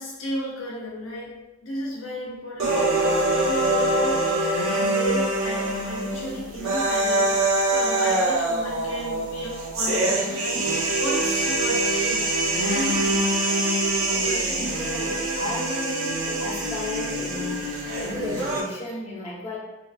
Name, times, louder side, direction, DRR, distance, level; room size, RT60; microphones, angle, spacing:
voice 1, 0.0-12.3 12.7-13.5 14.2-15.2, equal, 70° left, -3 dB, 0.5 m, -34 dB
sound 1, 2.6-18.6, right 2 dB, 80° right, 0.6 m, -24 dB
voice 2, 14.1-17.7 18.0-19.6, left 1 dB, 35° left, -6 dB, 0.8 m, -34 dB
3.6 x 2.3 x 2.3 m, 1.0 s
head